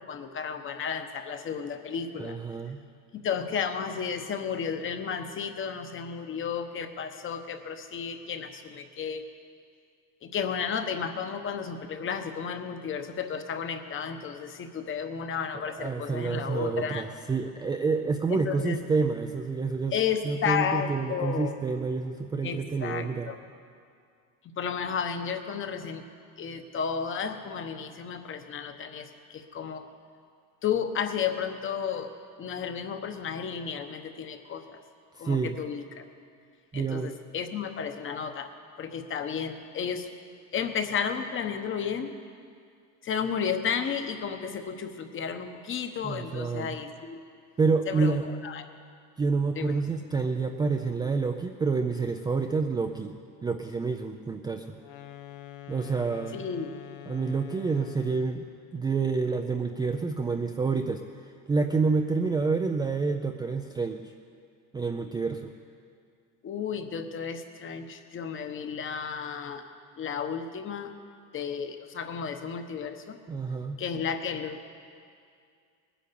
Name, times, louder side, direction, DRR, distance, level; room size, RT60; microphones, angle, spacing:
voice 1, 0.0-2.4 3.1-9.2 10.2-17.0 18.3-18.8 19.9-21.6 22.4-23.4 24.6-26.0 26.4-29.9 30.6-32.1 32.4-34.8 35.2-36.0 36.7-38.5 38.8-40.1 40.5-42.1 43.0-47.2 47.9-48.6 49.5-49.7 56.3-56.7 66.4-69.7 70.0-70.9 71.3-73.2 73.8-74.7, left 7 dB, 35° left, 8 dB, 1.0 m, -33 dB
voice 2, 2.2-2.8 15.8-19.9 20.2-23.3 35.1-35.6 36.7-37.1 46.0-46.8 47.6-48.3 49.2-54.7 55.7-56.4 57.1-58.4 58.7-61.0 61.5-64.0 64.7-65.5 73.3-73.8, right 4 dB, 10° right, 4 dB, 0.4 m, -28 dB
sound 1, 54.8-58.4, left 14 dB, 65° left, 1.2 m, -45 dB
19.5 x 10.0 x 6.8 m, 2.3 s
cardioid pair, 150°, 37 cm